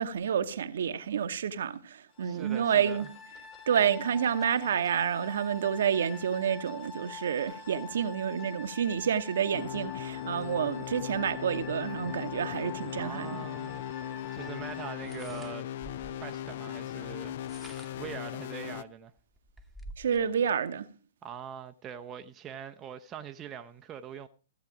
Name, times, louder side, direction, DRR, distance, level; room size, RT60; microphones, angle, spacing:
voice 1, 0.0-3.1 3.7-13.4 20.0-20.9, right 8 dB, 60° right, 0.9 m, -29 dB
sound 1, 2.2-15.0, left 5 dB, 30° left, 2.0 m, -46 dB
voice 2, 2.2-3.1 13.0-13.8 14.3-15.7 16.1-17.7 18.0-19.1 21.2-24.3, right 8 dB, 20° right, 0.6 m, -43 dB
sound 2, 9.5-18.8, left 12 dB, 50° left, 0.5 m, -38 dB
sound 3, 13.6-13.7 15.0-16.3 17.3-18.1 18.8-18.9 19.2-20.3, right 1 dB, ahead, 1.1 m, -49 dB
14.5 x 8.1 x 4.9 m
figure-of-eight pair, 115°, 0 cm